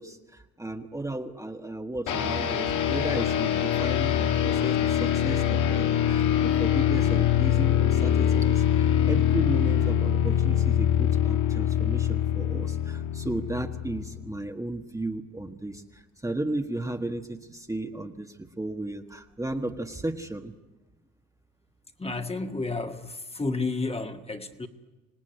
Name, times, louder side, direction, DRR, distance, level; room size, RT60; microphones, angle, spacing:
voice 1, 0.0-20.5, right 2 dB, 10° right, 4 dB, 1.6 m, -35 dB
sound 1, 2.1-14.3, left 10 dB, 80° left, 2.1 m, -24 dB
voice 2, 22.0-24.7, left 3 dB, 20° left, 5 dB, 1.8 m, -31 dB
26.5 x 18.5 x 9.2 m, 1.1 s
cardioid pair, 90°, 30 cm